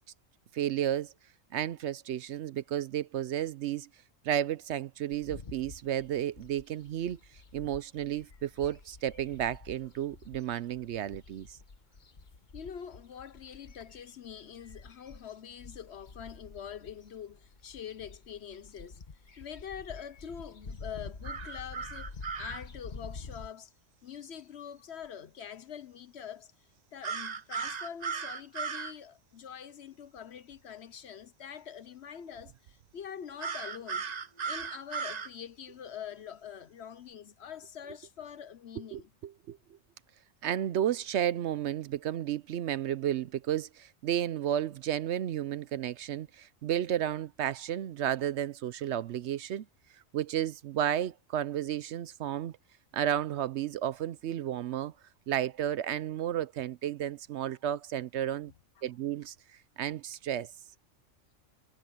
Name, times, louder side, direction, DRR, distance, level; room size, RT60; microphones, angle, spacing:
voice 1, 0.5-1.1 1.5-3.9 4.2-7.2 7.5-11.5 38.9-39.6 40.4-49.6 50.1-52.5 52.9-54.9 55.3-58.5 58.8-59.3 59.8-60.5, right 11 dB, 65° right, 0.8 m, -32 dB
sound 1, 5.1-23.5, left 4 dB, 40° left, 1.3 m, -48 dB
voice 2, 12.5-19.0 19.4-23.7 24.0-26.5 26.9-34.1 34.4-39.1 58.8-58.9, left 8 dB, 60° left, 1.0 m, -44 dB
sound 2, 21.2-22.6 27.0-28.9 33.4-35.3, right 6 dB, 40° right, 0.7 m, -36 dB
omnidirectional pair, 1.3 m